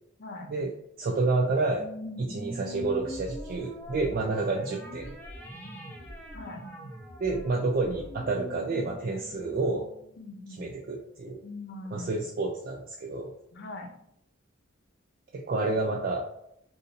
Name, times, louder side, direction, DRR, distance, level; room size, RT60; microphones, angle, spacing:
voice 1, 0.2-0.5 2.0-2.3 6.3-6.6 10.2-10.7 11.4-12.1 13.5-13.9, left 2 dB, 55° left, 2 dB, 0.6 m, -41 dB
voice 2, 1.0-1.9 2.3-5.2 7.2-9.9 10.6-11.4 11.9-13.3 15.3-16.3, right 3 dB, 45° right, 0 dB, 0.4 m, -29 dB
sound 1, 1.8-10.5, equal, 10° left, 0.5 m, -43 dB
2.6 x 2.6 x 4.0 m, 0.75 s
head